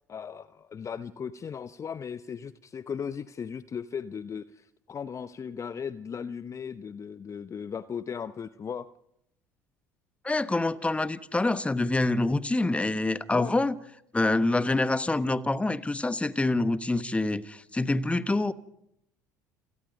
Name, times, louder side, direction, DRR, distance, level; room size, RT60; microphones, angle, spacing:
voice 1, 0.1-8.9 13.3-13.5, left 7 dB, 30° left, 0.7 m, -37 dB
voice 2, 10.2-13.7 14.1-18.5, left 2 dB, 15° left, 1.2 m, -26 dB
29.0 x 18.5 x 5.3 m
hypercardioid pair, 65°, 10 cm